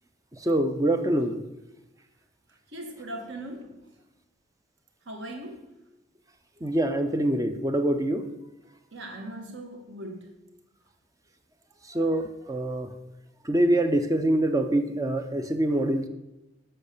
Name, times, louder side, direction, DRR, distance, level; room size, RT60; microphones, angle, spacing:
voice 1, 0.3-1.4 6.6-8.3 11.8-12.9 13.4-16.1, right 1 dB, 15° right, 8 dB, 0.5 m, -25 dB
voice 2, 2.7-3.8 5.0-5.7 8.9-10.3, right 1 dB, 65° right, 3 dB, 1.6 m, -39 dB
7.6 x 6.4 x 6.6 m, 0.96 s
head